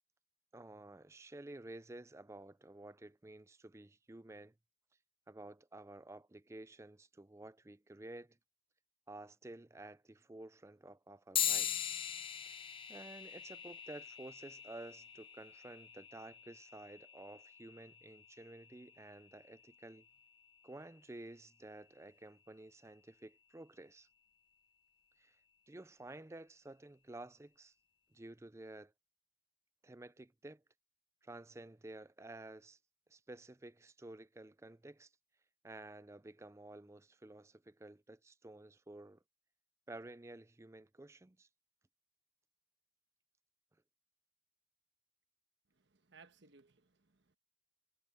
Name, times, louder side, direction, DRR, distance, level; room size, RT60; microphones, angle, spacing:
voice 1, 0.5-4.5 5.3-8.4 9.1-11.9 12.4-12.6 12.9-20.1 20.6-24.1 25.2-25.4 25.7-27.7 28.1-28.9 29.8-30.6 31.2-32.8 33.1-35.1 35.6-39.2 39.9-41.5, right 2 dB, 15° right, 0.4 m, -52 dB
sound 1, 11.3-21.2, left 10 dB, 25° left, 0.7 m, -42 dB
voice 2, 45.7-47.4, right 4 dB, 65° right, 1.3 m, -63 dB
head